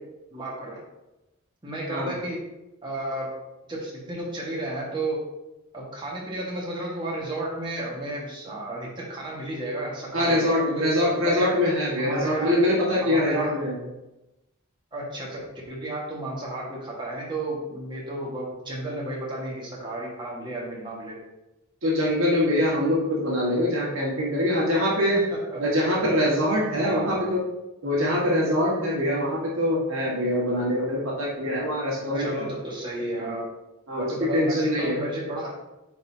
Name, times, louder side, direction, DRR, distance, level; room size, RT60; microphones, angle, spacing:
voice 1, 0.3-0.8 1.6-2.5 2.8-3.3 3.7-5.3 5.7-11.5 12.0-12.5 13.0-13.5 14.9-21.2 25.0-25.6 26.8-27.2 32.1-33.4 33.9-35.6, right 1 dB, 20° right, -4 dB, 1.6 m, -33 dB
voice 2, 10.1-13.8 21.8-25.2 25.6-27.4 27.8-32.5 33.9-35.0, left 1 dB, 65° right, -5 dB, 1.7 m, -24 dB
9.2 x 4.0 x 2.8 m, 0.99 s
head